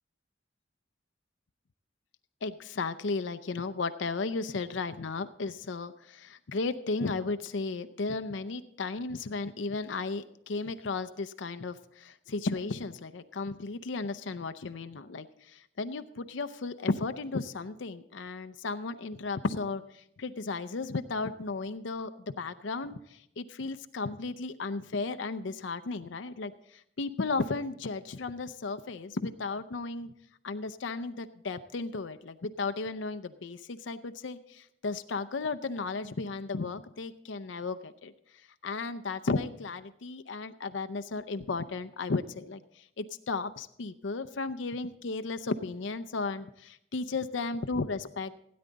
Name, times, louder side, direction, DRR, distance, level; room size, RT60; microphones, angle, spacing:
voice 1, 2.4-30.1 30.4-46.5 46.9-48.3, left 3 dB, 70° left, 11 dB, 0.6 m, -34 dB
16.5 x 9.6 x 4.0 m, 0.74 s
head